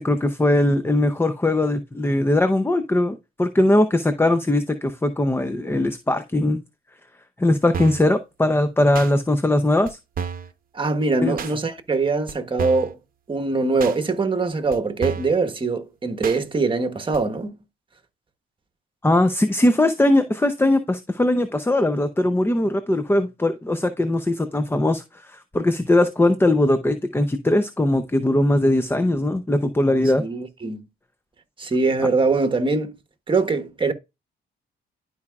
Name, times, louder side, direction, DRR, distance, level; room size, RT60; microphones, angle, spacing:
voice 1, 0.0-6.6 7.4-10.0 11.2-11.4 19.0-30.2, left 1 dB, 10° left, 0.6 m, -20 dB
sound 1, 7.7-8.1 8.9-9.1 9.9-10.0 10.2-10.5 11.4-11.5 12.3-12.4 12.6-12.9 13.8-14.0 14.7-14.8 15.0-15.4 16.2-16.4 17.1-17.2, right 6 dB, 45° right, 0.9 m, -30 dB
voice 2, 10.7-13.0 13.3-17.6 30.2-30.9 31.6-33.0 33.3-33.9, right 3 dB, 25° right, 1.2 m, -22 dB
12.0 x 4.8 x 2.4 m
cardioid pair, 90°, 20 cm